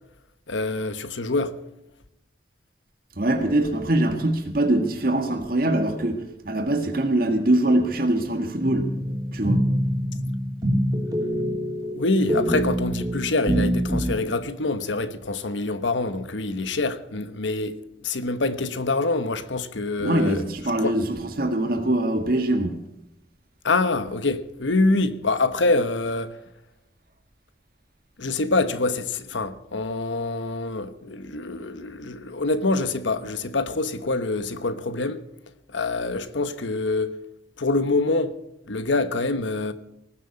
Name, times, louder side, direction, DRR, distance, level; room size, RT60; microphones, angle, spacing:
voice 1, 0.5-1.6 12.0-17.8 18.0-20.4 20.8-21.0 23.6-26.4 28.2-35.2 35.7-37.2 37.6-38.4 38.7-39.7, left 3 dB, 90° left, 1.1 m, -25 dB
voice 2, 3.2-8.9 9.3-9.6 20.0-22.8, right 1 dB, 50° right, 1.8 m, -23 dB
sound 1, 8.6-14.1, equal, 20° right, 3.0 m, -25 dB
18.5 x 7.7 x 8.9 m
head